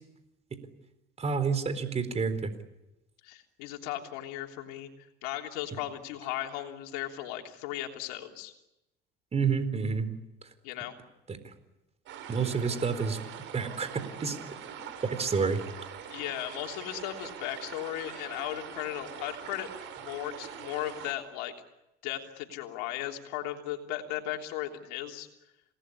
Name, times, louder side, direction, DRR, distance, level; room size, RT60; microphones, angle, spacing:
voice 1, 1.2-2.5 9.3-10.1 12.3-13.2 13.5-14.4 15.0-15.6, right 5 dB, 35° right, 11 dB, 4.2 m, -29 dB
voice 2, 3.2-8.5 10.6-10.9 16.1-19.7 20.0-21.5 22.0-25.3, left 13 dB, 90° left, 3 dB, 3.3 m, -36 dB
sound 1, 12.1-21.1, right 8 dB, 70° right, 6.5 m, -43 dB
28.0 x 19.0 x 9.9 m, 0.93 s
supercardioid pair, 85°, 20 cm